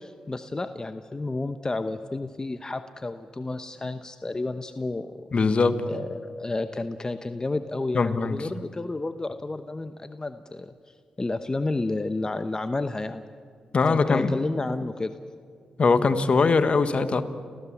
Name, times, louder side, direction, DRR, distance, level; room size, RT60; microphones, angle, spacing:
voice 1, 0.0-5.1 5.9-10.7 11.2-13.2 13.9-15.1, left 2 dB, 30° left, 10 dB, 0.9 m, -31 dB
voice 2, 5.3-5.8 7.9-8.4 13.7-14.3 15.8-17.2, left 4 dB, 50° left, 11 dB, 1.4 m, -21 dB
30.0 x 15.0 x 7.3 m, 2.1 s
supercardioid pair, 50°, 2 cm